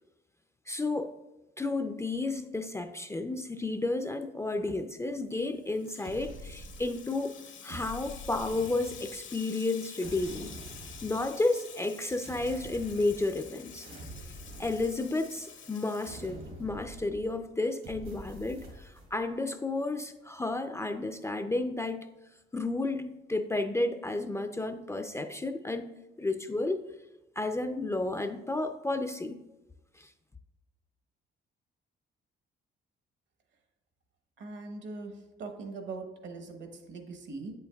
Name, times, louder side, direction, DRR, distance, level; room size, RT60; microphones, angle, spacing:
voice 1, 0.7-1.1 1.6-7.4 7.6-10.5 11.0-13.9 14.6-22.0 22.5-25.9 26.2-26.9 27.4-29.4 30.0-30.1, left 2 dB, 15° left, 8 dB, 0.3 m, -32 dB
Water tap faucet / Sink (filling or washing), 5.4-16.8, left 7 dB, 75° left, 0.9 m, -49 dB
sound 1, 6.0-7.2 7.7-9.3 10.0-11.3 12.2-13.5 13.8-15.4 16.0-17.4 17.8-19.1, right 1 dB, 85° right, 2.4 m, -46 dB
voice 2, 34.4-35.1 35.4-37.5, right 3 dB, 70° right, 5 dB, 1.1 m, -41 dB
7.9 x 6.8 x 2.3 m, 1.0 s
cardioid pair, 90°, 20 cm